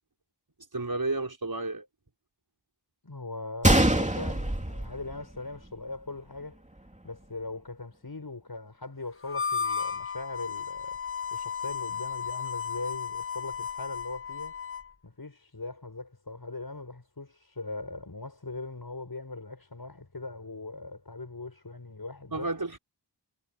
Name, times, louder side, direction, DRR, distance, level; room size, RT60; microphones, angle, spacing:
voice 1, 0.7-1.9 22.3-22.8, right 2 dB, 55° right, 5.6 m, -31 dB
voice 2, 3.0-6.6 7.0-11.0 11.3-14.6 15.0-22.5, left 3 dB, 55° left, 6.3 m, -40 dB
Gunshot gunfire, 3.6-5.7 5.9-6.0 6.7-6.9, right 1 dB, 15° right, 3.0 m, -24 dB
Harmonica, 9.2-14.9, left 6 dB, 30° left, 1.5 m, -34 dB
wide cardioid pair, 45°, 44 cm